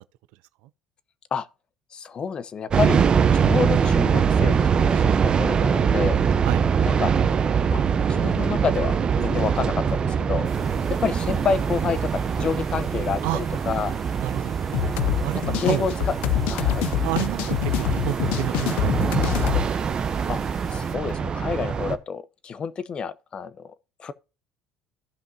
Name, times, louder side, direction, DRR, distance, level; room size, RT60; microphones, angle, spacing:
voice 1, 1.9-3.0 3.3-5.0 5.4-6.2 6.8-7.1 7.7-10.5 11.0-14.0 15.6-16.1 16.5-16.9 20.3-20.4 20.7-23.7 24.0-24.1, left 6 dB, 40° left, 0.8 m, -28 dB
sound 1, 2.7-22.0, right 6 dB, 35° right, 0.8 m, -23 dB
sound 2, 10.4-21.0, equal, 10° left, 1.5 m, -47 dB
voice 2, 14.2-14.6 15.2-15.9 17.0-19.2 19.6-19.7, right 17 dB, 80° right, 0.4 m, -30 dB
sound 3, 14.7-19.7, left 12 dB, 80° left, 0.5 m, -25 dB
15.0 x 5.4 x 2.7 m
supercardioid pair, 90°, 2 cm